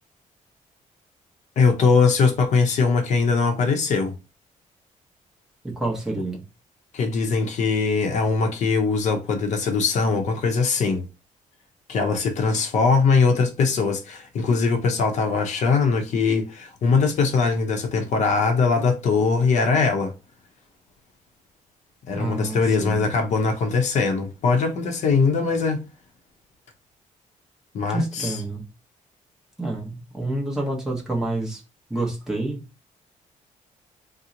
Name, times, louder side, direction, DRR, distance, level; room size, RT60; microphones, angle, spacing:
voice 1, 1.6-4.1 6.9-11.0 11.9-20.1 22.1-25.8 27.7-28.4, left 4 dB, 60° left, 0.6 m, -21 dB
voice 2, 5.6-6.4 22.1-23.1 27.9-28.7 29.6-31.6 31.9-32.6, right 2 dB, 5° right, 0.7 m, -28 dB
2.9 x 2.0 x 3.6 m
cardioid pair, 155°, 14 cm